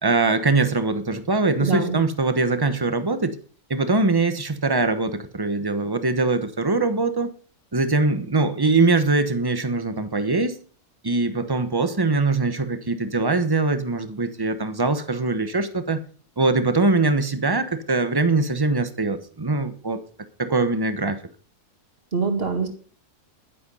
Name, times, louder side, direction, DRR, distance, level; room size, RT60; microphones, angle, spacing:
voice 1, 0.0-3.4 3.7-7.3 7.7-10.6 11.0-16.0 16.4-20.0 20.4-21.2, right 3 dB, 20° right, 10 dB, 1.0 m, -22 dB
voice 2, 1.6-2.0 22.1-22.7, right 4 dB, 40° right, 5 dB, 2.2 m, -24 dB
11.5 x 10.5 x 5.5 m, 0.42 s
omnidirectional pair, 1.6 m